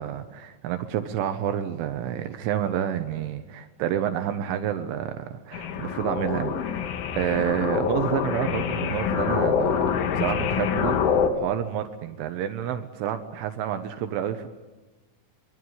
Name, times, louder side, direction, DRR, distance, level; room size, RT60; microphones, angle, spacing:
voice 1, 0.0-14.5, right 10 dB, 80° right, 7 dB, 3.6 m, -29 dB
sound 1, 5.5-11.3, left 7 dB, 75° left, 4.5 m, -26 dB
25.0 x 24.5 x 9.6 m, 1.2 s
omnidirectional pair, 5.7 m